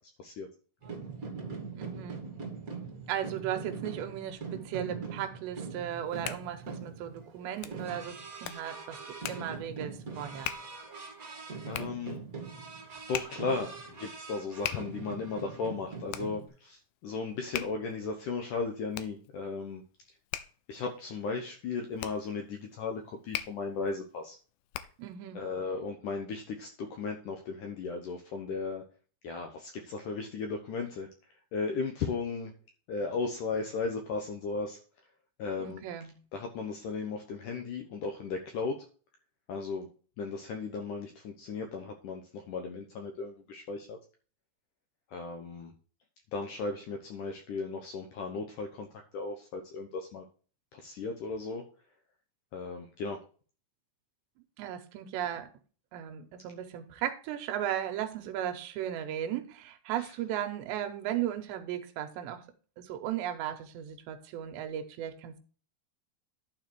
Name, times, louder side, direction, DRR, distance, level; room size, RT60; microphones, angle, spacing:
sound 1, 0.8-16.5, right 4 dB, 35° right, 1.3 m, -42 dB
voice 1, 1.8-2.2 3.1-8.2 8.4-9.0 9.3-10.5 25.0-25.4 35.6-36.1 54.6-55.5 55.9-62.4 62.8-65.4, right 10 dB, 85° right, 7 dB, 3.2 m, -36 dB
Hands, 5.8-25.2, left 13 dB, 90° left, 2.0 m, -43 dB
voice 2, 11.7-12.2 13.1-19.8 20.7-24.4 25.4-28.8 29.2-31.1 31.5-32.5 32.9-34.8 35.4-35.8 36.3-38.9 39.5-39.9 40.2-44.0 45.1-45.7 46.3-48.9 49.1-50.2 50.7-51.6 52.5-53.2 60.0-60.1, left 4 dB, 70° left, 4 dB, 2.0 m, -36 dB
11.5 x 4.9 x 4.5 m, 0.39 s
omnidirectional pair, 5.0 m